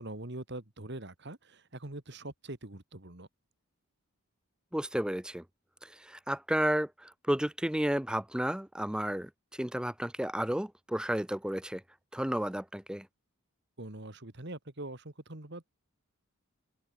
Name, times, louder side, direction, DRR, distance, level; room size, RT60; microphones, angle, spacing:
voice 1, 0.0-3.3 13.8-15.7, right 1 dB, 50° right, 2.2 m, -43 dB
voice 2, 4.7-5.4 5.8-9.3 9.6-11.8 12.1-13.1, right 1 dB, 5° right, 0.5 m, -32 dB
open air
head